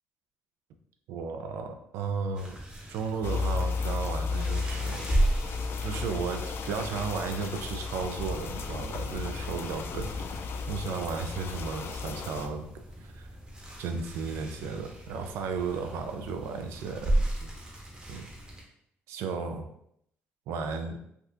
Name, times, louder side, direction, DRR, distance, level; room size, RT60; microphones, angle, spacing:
voice 1, 1.1-2.6 2.9-5.1 5.5-12.6 13.0-13.3 13.8-17.6 18.1-18.3 19.1-19.7 20.5-21.0, right 5 dB, 85° right, 5 dB, 0.4 m, -34 dB
sound 1, 2.3-18.6, right 1 dB, 20° right, 0.9 m, -36 dB
sound 2, 3.2-12.5, left 4 dB, 60° left, 0.3 m, -34 dB
3.5 x 2.4 x 2.7 m, 0.73 s
cardioid pair, 95°, 5 cm